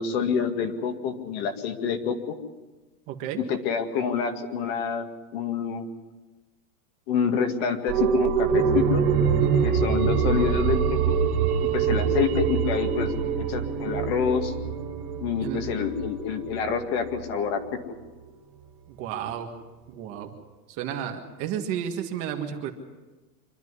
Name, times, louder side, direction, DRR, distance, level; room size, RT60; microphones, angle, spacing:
voice 1, 0.0-2.4 3.5-5.9 7.1-9.0 9.6-11.1 11.6-14.5 15.2-17.8, left 6 dB, 40° left, 6 dB, 2.1 m, -27 dB
voice 2, 3.1-3.4 9.4-9.7 15.4-15.7 18.9-19.5 19.9-20.3 20.7-22.7, right 9 dB, 30° right, 4 dB, 1.7 m, -32 dB
sound 1, 7.9-17.2 17.6-17.7, right 7 dB, 65° right, 3.0 m, -25 dB
26.0 x 12.0 x 9.8 m, 1.2 s
supercardioid pair, 175°, 47 cm